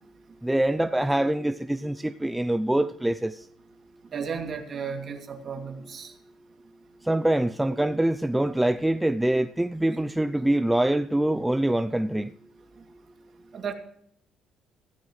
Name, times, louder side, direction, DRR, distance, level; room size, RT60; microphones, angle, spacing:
voice 1, 0.4-3.3 7.1-12.3, right 1 dB, 5° right, 0.5 m, -24 dB
voice 2, 4.1-6.2 12.8-12.9 13.5-13.7, right 6 dB, 45° right, 2.6 m, -34 dB
15.5 x 15.0 x 3.2 m
cardioid pair, 110°, 0 cm